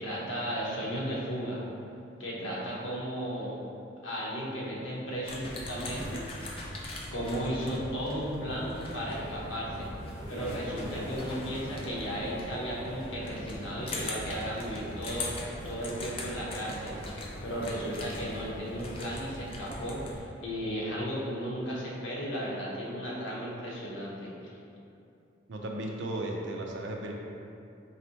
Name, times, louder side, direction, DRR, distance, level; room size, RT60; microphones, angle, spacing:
voice 1, 0.0-1.6 2.2-3.6 4.0-6.3 7.1-9.9 10.3-17.0 17.4-24.3, equal, 85° left, -5 dB, 0.9 m, -35 dB
sound 1, 5.2-20.2, left 1 dB, 30° left, 0.4 m, -41 dB
sound 2, 8.5-19.9, equal, 10° left, 1.2 m, -44 dB
voice 2, 25.5-27.1, right 1 dB, 70° right, 0 dB, 0.5 m, -35 dB
4.1 x 3.2 x 2.8 m, 2.7 s
head